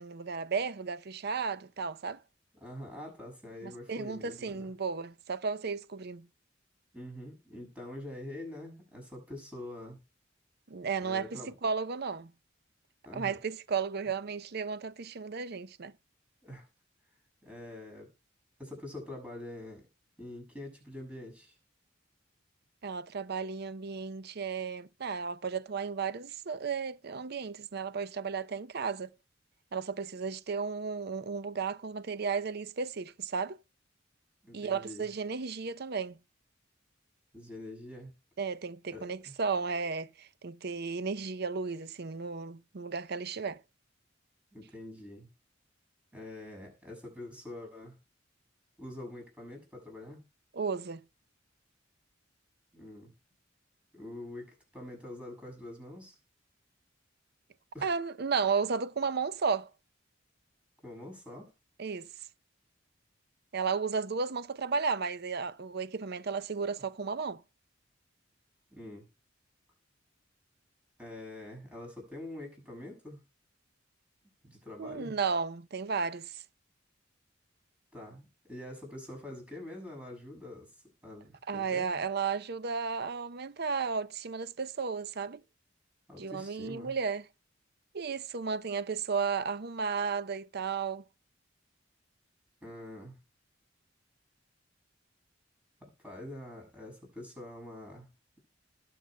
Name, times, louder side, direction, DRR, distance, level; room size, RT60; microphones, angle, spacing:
voice 1, 0.0-2.2 3.6-6.3 10.7-12.3 13.1-15.9 22.8-29.1 29.7-33.6 34.5-36.2 38.4-43.6 50.5-51.0 57.8-59.7 61.8-62.1 63.5-67.4 74.8-76.4 81.5-85.4 86.2-87.2 87.9-91.0, right 5 dB, 55° right, 0.6 m, -34 dB
voice 2, 2.6-4.7 6.9-10.0 11.0-11.6 13.0-13.4 16.4-16.7 17.4-18.1 18.6-19.9 20.2-21.6 34.4-35.1 37.3-38.1 38.9-39.3 44.5-45.3 46.1-48.0 48.8-50.3 52.7-53.1 53.9-56.1 57.7-57.9 60.8-61.5 68.7-69.1 71.0-73.2 74.4-75.2 77.9-82.0 86.1-86.9 92.6-93.2 95.8-98.1, left 1 dB, 5° right, 6.8 m, -45 dB
20.5 x 7.7 x 2.2 m
head